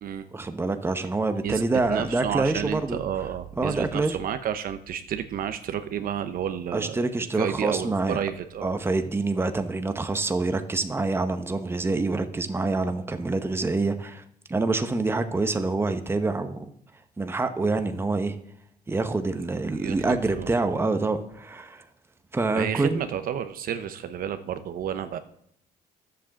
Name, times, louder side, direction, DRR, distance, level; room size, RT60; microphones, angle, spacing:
voice 1, 0.3-3.0 3.6-4.2 6.7-8.2 8.6-14.2 14.5-16.6 17.2-18.4 18.9-21.8 22.3-23.0, right 3 dB, 15° right, 8 dB, 1.0 m, -26 dB
voice 2, 1.9-8.7 19.8-20.5 22.5-25.2, right 9 dB, 60° right, 10 dB, 0.9 m, -31 dB
11.5 x 7.7 x 7.1 m, 0.69 s
cardioid pair, 110°, 17 cm